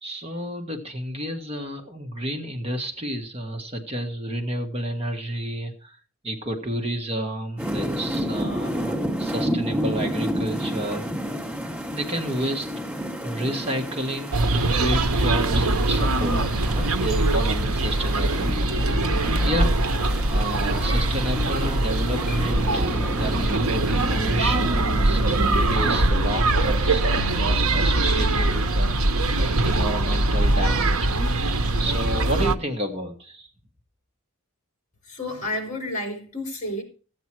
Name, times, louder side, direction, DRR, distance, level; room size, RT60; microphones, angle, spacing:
voice 1, 0.0-11.1 11.9-12.7 13.2-18.6 19.4-19.8 20.3-29.1 29.6-31.1 31.8-33.5, right 1 dB, 30° right, 1.5 m, -31 dB
sound 1, 7.6-26.1, equal, 10° right, 2.9 m, -31 dB
sound 2, 14.3-32.6, right 2 dB, 70° right, 0.9 m, -22 dB
voice 2, 35.0-36.8, left 1 dB, 35° left, 4.1 m, -30 dB
15.5 x 8.7 x 4.6 m
head